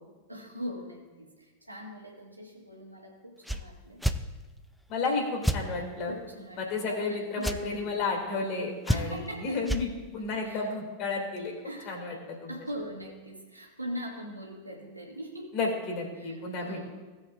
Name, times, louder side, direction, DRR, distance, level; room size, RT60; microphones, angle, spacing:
voice 1, 0.3-4.3 6.1-7.9 8.9-9.6 10.4-10.7 11.6-11.9 12.5-15.6 16.2-16.9, equal, 85° right, -1 dB, 2.0 m, -41 dB
sound 1, 3.4-3.6 4.0-4.2 5.4-5.6 7.4-7.6 8.8-9.3 9.6-9.8, equal, ahead, 0.5 m, -27 dB
voice 2, 4.9-6.1 6.6-11.5 11.9-12.5 15.5-16.9, left 3 dB, 40° left, 1 dB, 2.5 m, -32 dB
17.5 x 7.6 x 2.5 m, 1.2 s
figure-of-eight pair, 90°, 0 cm